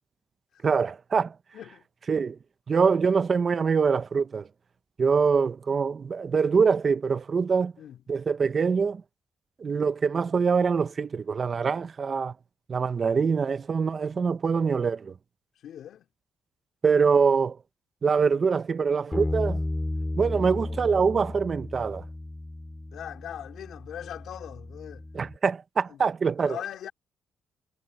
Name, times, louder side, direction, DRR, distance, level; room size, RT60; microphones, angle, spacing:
voice 1, 0.6-1.3 2.1-2.4 2.7-4.5 5.0-7.7 8.1-9.0 9.6-12.3 12.7-15.1 16.8-17.6 18.0-19.6 20.2-22.0 25.1-26.6, right 5 dB, 40° right, 0.8 m, -24 dB
voice 2, 1.5-1.8 7.8-8.0 15.6-16.1 22.9-25.0 25.9-26.1 26.4-26.9, left 10 dB, 70° left, 4.0 m, -40 dB
Bass guitar, 19.1-25.4, left 2 dB, 15° left, 2.6 m, -34 dB
cardioid pair, 90°, 0 cm